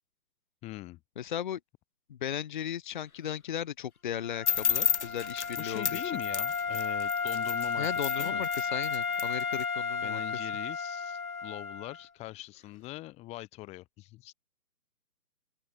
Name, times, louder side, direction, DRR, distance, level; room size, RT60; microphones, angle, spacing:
voice 1, 0.6-1.0 5.6-8.4 10.0-14.3, left 18 dB, 15° left, 2.3 m, -42 dB
voice 2, 1.2-1.6 2.1-6.2 7.8-10.2, left 10 dB, 30° left, 1.1 m, -36 dB
Wind instrument woodwind instrument, 4.2-12.0, left 5 dB, 65° left, 2.3 m, -33 dB
sound 1, 4.5-9.6, left 7 dB, 50° left, 0.6 m, -32 dB
open air
figure-of-eight pair, 140°, 46 cm